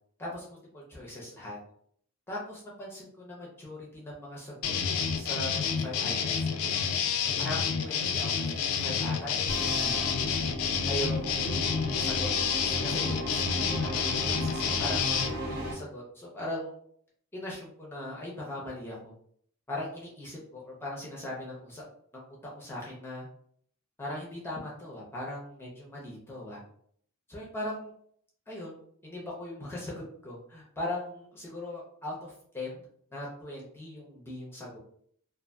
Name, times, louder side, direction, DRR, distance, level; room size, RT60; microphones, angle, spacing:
voice 1, 0.2-1.6 2.3-6.8 7.4-10.0 10.9-12.3 12.6-16.7 17.3-19.1 19.7-21.8 22.1-22.2 22.6-23.3 24.0-26.6 27.3-27.9 28.5-32.8 33.1-34.8, left 1 dB, 10° left, -4 dB, 0.5 m, -39 dB
sound 1, 4.6-15.3, left 6 dB, 75° left, 0.3 m, -29 dB
sound 2, 9.5-15.7, right 1 dB, 45° right, 0.6 m, -36 dB
2.5 x 2.4 x 2.2 m, 0.63 s
head